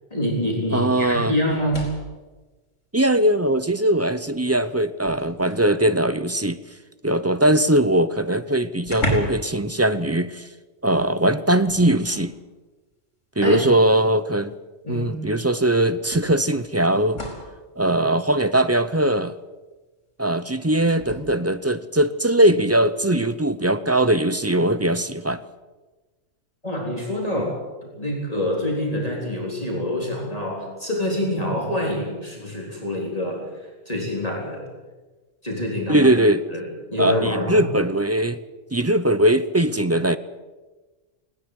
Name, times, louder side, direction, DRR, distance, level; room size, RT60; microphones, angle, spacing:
voice 1, 0.1-1.9 13.4-13.6 14.8-15.2 26.6-27.6 27.8-33.5 33.9-34.6 35.4-36.1 36.5-37.7, left 1 dB, 30° left, -2 dB, 4.0 m, -26 dB
voice 2, 0.7-1.3 2.9-6.6 7.0-10.5 10.8-12.4 13.4-14.5 14.9-17.2 17.8-19.3 20.2-25.4 27.4-27.5 35.9-36.4 37.0-38.4 38.7-40.2, right 1 dB, 20° right, 13 dB, 0.5 m, -20 dB
sound 1, 1.5-2.2 3.6-3.7 4.2-5.8 7.8-7.9 8.2-8.3 8.8-9.6 9.8-10.1 11.6-12.3 13.5-13.6 15.1-15.2 16.1-17.6 20.9-21.2, equal, 70° left, 4.9 m, -33 dB
19.5 x 18.5 x 8.1 m, 1.2 s
omnidirectional pair, 1.3 m